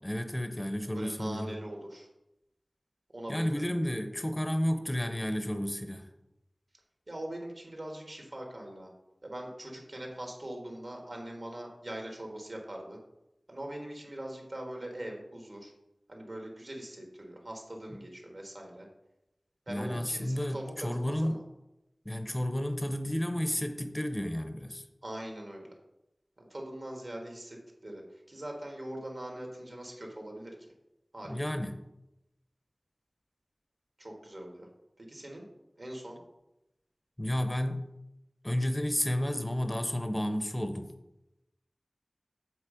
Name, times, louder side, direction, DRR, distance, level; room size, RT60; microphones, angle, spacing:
voice 1, 0.0-1.5 3.3-6.1 19.7-21.4 22.0-24.8 31.2-31.8 37.2-37.9 38.4-40.9, equal, 20° left, 8 dB, 0.7 m, -31 dB
voice 2, 0.9-2.1 3.1-3.6 7.1-8.9 9.2-13.0 13.5-15.7 16.1-18.9 19.7-21.4 25.0-25.7 26.4-30.7 31.1-31.3 34.0-34.7 35.0-35.5 35.8-36.2, right 1 dB, 55° right, 1 dB, 1.7 m, -42 dB
7.4 x 4.1 x 5.0 m, 0.90 s
wide cardioid pair, 65°, 0 cm